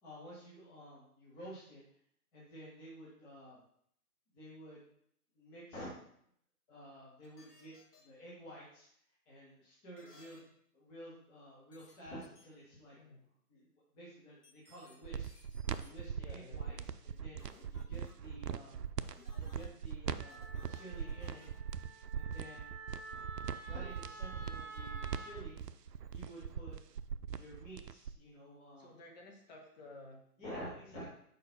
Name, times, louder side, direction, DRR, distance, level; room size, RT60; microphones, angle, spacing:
voice 1, 0.0-1.8 2.3-3.6 4.3-4.9 5.3-5.9 6.7-7.8 8.0-8.9 9.3-13.0 13.5-15.3 15.7-16.8 17.0-18.8 19.3-21.5 22.1-22.7 23.2-23.3 23.6-25.6 26.1-26.7 27.1-28.9 30.4-31.1, equal, 10° left, -7 dB, 0.9 m, -51 dB
sound 1, 7.2-8.0 10.0-10.4 11.7-11.9 12.2-12.4 14.4-14.9 15.2-15.9 17.4-18.1 19.0-19.7 20.3-21.6, left 2 dB, 75° left, 2.3 m, -61 dB
voice 2, 12.9-13.3 16.2-16.9 28.8-30.3 30.8-31.1, left 2 dB, 30° left, 0 dB, 1.1 m, -54 dB
sound 2, 15.0-28.2, right 7 dB, 90° right, 0.6 m, -41 dB
Wind instrument woodwind instrument, 20.2-25.4, right 4 dB, 45° right, 1.4 m, -50 dB
4.9 x 4.8 x 5.8 m, 0.69 s
figure-of-eight pair, 145°, 47 cm